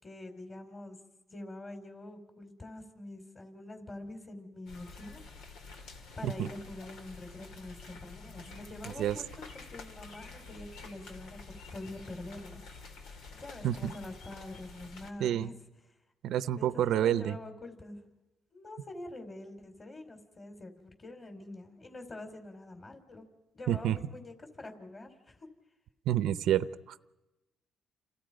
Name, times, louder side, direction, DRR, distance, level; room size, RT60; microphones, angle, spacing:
voice 1, 0.0-1.0 1.3-5.2 6.2-12.6 13.3-15.5 16.6-18.0 18.5-23.2 23.5-25.5, left 2 dB, 35° left, 5 dB, 4.7 m, -45 dB
sound 1, 4.7-15.1, left 4 dB, 90° left, 2.4 m, -49 dB
voice 2, 15.2-15.5 16.2-17.4 23.7-24.0 26.1-27.1, right 11 dB, 80° right, 14 dB, 0.8 m, -29 dB
30.0 x 28.5 x 5.3 m, 1.0 s
cardioid pair, 90°, 0 cm